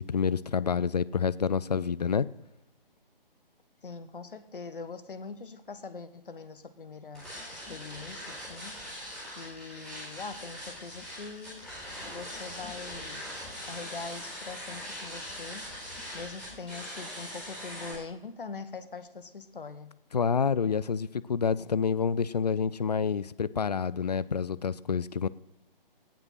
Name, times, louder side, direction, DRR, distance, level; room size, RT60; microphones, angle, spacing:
voice 1, 0.0-2.3 20.1-25.3, left 6 dB, 45° left, 20 dB, 0.4 m, -28 dB
voice 2, 3.8-8.8 9.4-11.7 12.1-13.2 13.6-15.7 16.1-20.0, left 4 dB, 65° left, 12 dB, 1.1 m, -42 dB
sound 1, 7.1-17.9, equal, 5° left, 4.0 m, -41 dB
17.5 x 6.3 x 5.8 m, 0.85 s
figure-of-eight pair, 145°, 29 cm